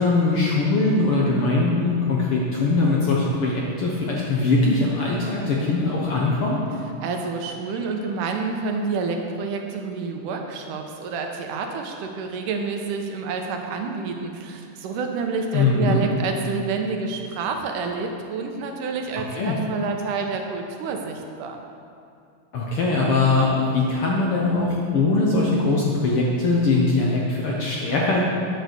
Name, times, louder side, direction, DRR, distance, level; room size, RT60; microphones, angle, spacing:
voice 1, 0.0-6.6 15.5-16.0 19.3-19.5 22.5-28.2, left 3 dB, 65° left, -3 dB, 1.4 m, -21 dB
voice 2, 7.0-21.6, right 4 dB, 85° right, 3 dB, 2.4 m, -28 dB
9.3 x 6.7 x 6.7 m, 2.4 s
omnidirectional pair, 3.7 m